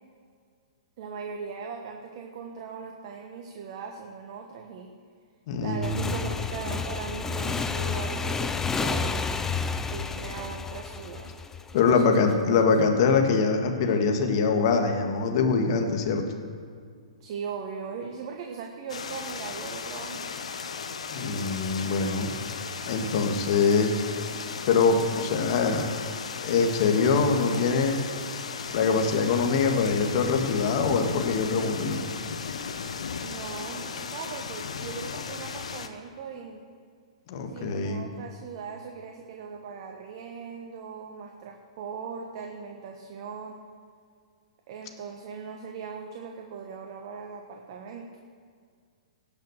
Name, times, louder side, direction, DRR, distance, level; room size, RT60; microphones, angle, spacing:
voice 1, 1.0-4.9 5.6-9.2 9.8-11.4 11.7-12.1 17.2-20.3 33.2-36.6 37.5-43.6 44.7-48.1, right 6 dB, 50° right, 3 dB, 1.3 m, -39 dB
voice 2, 5.5-6.2 11.7-16.2 21.1-22.3 22.9-24.0 24.6-25.9 26.4-28.0 28.7-32.1 37.3-38.1, left 4 dB, 50° left, 4 dB, 1.9 m, -24 dB
Motorcycle / Engine, 5.8-12.2, left 5 dB, 10° left, 0.6 m, -30 dB
sound 1, 18.9-35.9, left 6 dB, 75° left, 1.0 m, -36 dB
17.5 x 6.5 x 6.7 m, 2.1 s
hypercardioid pair, 120°, 3 cm